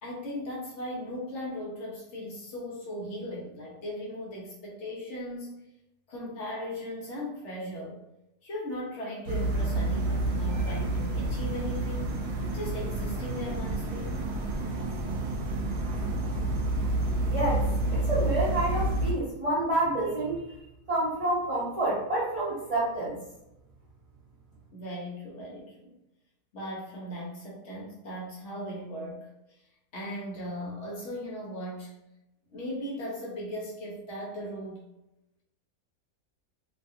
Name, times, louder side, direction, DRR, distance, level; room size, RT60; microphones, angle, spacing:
voice 1, 0.0-5.6 6.1-8.0 8.4-12.2 12.5-14.2 24.7-26.0 26.5-29.3 29.9-31.9 32.5-34.8, left 1 dB, 60° left, -3 dB, 0.9 m, -38 dB
sound 1, 9.3-19.1, right 2 dB, 80° right, 1.1 m, -29 dB
voice 2, 17.3-17.6 17.9-20.5 20.9-23.2, right 2 dB, 60° right, -7 dB, 0.3 m, -28 dB
2.7 x 2.3 x 2.6 m, 0.88 s
omnidirectional pair, 1.6 m